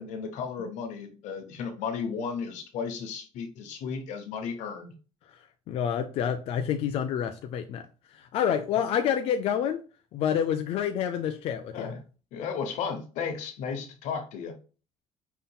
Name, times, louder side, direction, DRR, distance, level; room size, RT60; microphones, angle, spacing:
voice 1, 0.0-5.0 11.7-12.0 12.3-14.6, left 6 dB, 80° left, 1.0 m, -34 dB
voice 2, 5.3-9.8 10.1-11.9, left 8 dB, 50° left, 0.4 m, -28 dB
5.5 x 3.7 x 2.3 m
cardioid pair, 160°, 12 cm